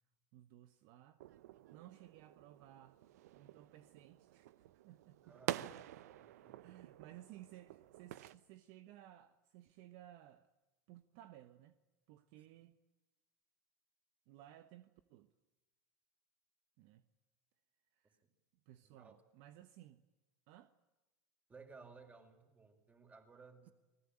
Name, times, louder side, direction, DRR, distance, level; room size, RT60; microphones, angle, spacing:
voice 1, 0.3-1.2 1.7-3.0 3.3-5.4 6.3-10.5 10.9-11.8 12.1-12.8 14.3-15.3 16.8-17.0 17.9-18.2 18.6-20.0 20.5-20.7, right 13 dB, 60° right, 1.3 m, -58 dB
sound 1, 1.2-8.4, right 14 dB, 75° right, 1.0 m, -48 dB
voice 2, 5.2-5.7 6.0-6.7 18.0-18.1 18.8-19.2 21.5-23.7, right 4 dB, 15° right, 5.2 m, -59 dB
29.5 x 20.0 x 8.9 m
hypercardioid pair, 110°, 9 cm